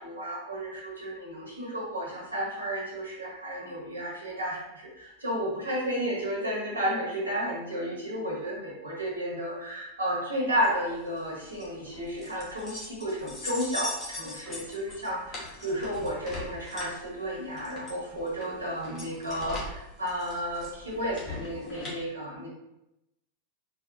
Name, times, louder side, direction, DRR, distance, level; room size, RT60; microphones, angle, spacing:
voice 1, 0.0-22.5, equal, 75° right, -4 dB, 1.1 m, -32 dB
sound 1, 10.6-21.9, left 2 dB, 25° left, 1.1 m, -41 dB
4.0 x 2.4 x 2.6 m, 0.88 s
figure-of-eight pair, 90°, 0 cm